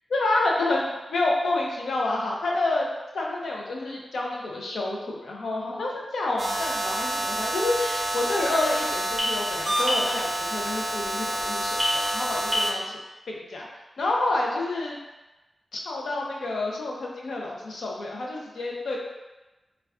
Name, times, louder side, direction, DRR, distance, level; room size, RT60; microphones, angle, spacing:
voice 1, 0.1-2.9 3.1-13.0 13.3-13.7 14.0-15.0 15.7-19.0, left 2 dB, 85° left, -2 dB, 0.5 m, -28 dB
sound 1, 6.4-12.7, equal, 40° right, 0.7 m, -27 dB
2.3 x 2.2 x 3.5 m, 1.1 s
cardioid pair, 70°, 0 cm